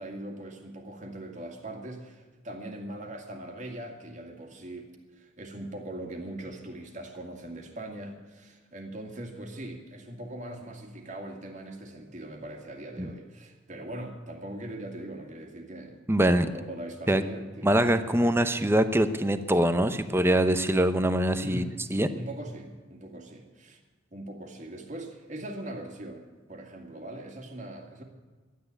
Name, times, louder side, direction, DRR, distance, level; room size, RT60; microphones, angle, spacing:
voice 1, 0.0-16.0 16.3-17.7 21.4-21.7 22.1-23.8 24.1-28.0, right 1 dB, 40° right, 3 dB, 2.1 m, -41 dB
voice 2, 16.1-16.5 17.1-17.3 17.6-21.6 21.9-22.1, right 1 dB, 15° right, 11 dB, 0.7 m, -23 dB
12.0 x 9.6 x 9.9 m, 1.4 s
head